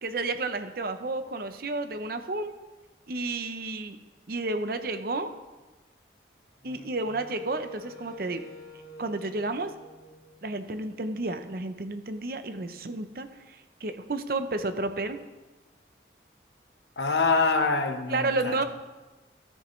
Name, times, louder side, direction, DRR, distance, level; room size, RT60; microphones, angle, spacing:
voice 1, 0.0-2.5 3.1-4.0 4.3-5.3 6.6-8.4 9.0-9.7 10.4-15.2 18.1-18.6, right 2 dB, 55° right, 9 dB, 0.7 m, -31 dB
Wind instrument woodwind instrument, 6.6-10.8, equal, 55° left, 1.8 m, -48 dB
voice 2, 17.0-18.6, left 3 dB, 75° left, 6 dB, 1.0 m, -25 dB
13.5 x 10.0 x 3.2 m, 1.2 s
head